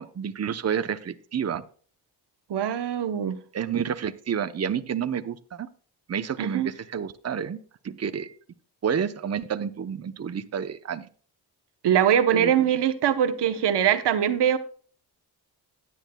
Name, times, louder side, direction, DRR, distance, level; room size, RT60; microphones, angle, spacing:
voice 1, 0.0-1.6 3.5-5.7 6.1-7.6 7.8-8.3 8.8-11.1 12.3-12.5, right 7 dB, 40° right, 0.7 m, -29 dB
voice 2, 2.5-3.4 6.4-6.7 11.8-14.6, right 9 dB, 90° right, 0.9 m, -22 dB
16.0 x 10.0 x 2.2 m
cardioid pair, 90°, 40 cm